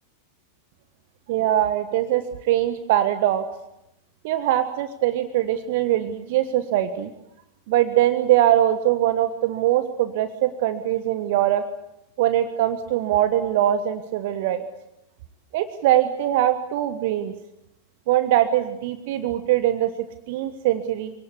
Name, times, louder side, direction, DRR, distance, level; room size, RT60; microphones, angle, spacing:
voice 1, 1.3-3.4 4.2-7.1 7.7-11.6 12.2-14.6 15.5-17.3 18.1-19.9 20.3-21.1, right 12 dB, 50° right, 10 dB, 1.3 m, -22 dB
26.0 x 18.0 x 8.4 m, 0.84 s
figure-of-eight pair, 90°, 0 cm